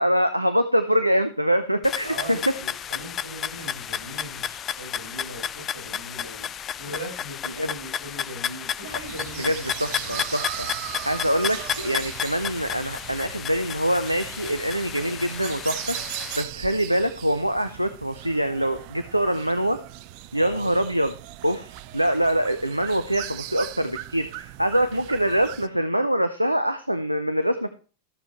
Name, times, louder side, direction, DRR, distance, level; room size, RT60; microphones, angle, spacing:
voice 1, 0.0-2.5 7.6-7.7 9.4-10.7 11.0-19.8 20.3-21.1 21.4-27.7, equal, 90° right, 10 dB, 0.6 m, -24 dB
sound 1, 1.8-16.4, left 9 dB, 25° left, 0.4 m, -32 dB
voice 2, 2.0-9.7 10.0-10.2 20.3-20.7, right 1 dB, 70° right, -1 dB, 5.7 m, -39 dB
sound 2, 8.9-25.7, right 14 dB, 45° right, 0.6 m, -38 dB
14.5 x 6.8 x 3.1 m, 0.38 s
figure-of-eight pair, 90°, 0 cm